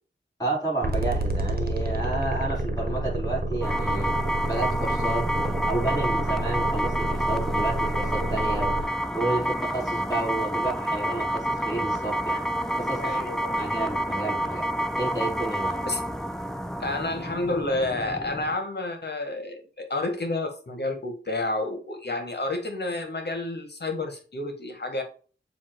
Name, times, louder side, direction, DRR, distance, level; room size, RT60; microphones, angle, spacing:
voice 1, 0.4-4.1 4.4-8.7 9.1-12.4 12.7-13.2 13.5-14.7 15.0-15.8, right 2 dB, 20° left, 3.5 m, -31 dB
sound 1, 0.8-8.8, right 2 dB, 50° right, 1.3 m, -29 dB
sound 2, 3.6-18.6, right 1 dB, 5° left, 0.7 m, -29 dB
voice 2, 13.0-13.6 15.9-16.0 16.8-25.0, left 2 dB, 60° left, 1.6 m, -30 dB
7.2 x 2.8 x 4.6 m
wide cardioid pair, 70°, 20 cm